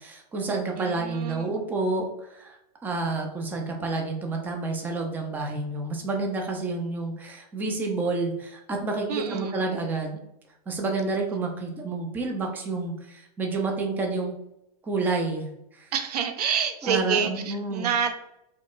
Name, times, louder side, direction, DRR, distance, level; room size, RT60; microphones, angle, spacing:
voice 1, 0.0-10.2 10.7-14.3 14.8-15.5 15.7-15.9 16.8-17.9, right 3 dB, 10° right, 2 dB, 0.4 m, -29 dB
voice 2, 0.8-1.6 9.1-9.7 15.9-18.2, right 7 dB, 85° right, 7 dB, 0.6 m, -28 dB
4.2 x 2.9 x 2.4 m, 0.82 s
supercardioid pair, 150°, 20 cm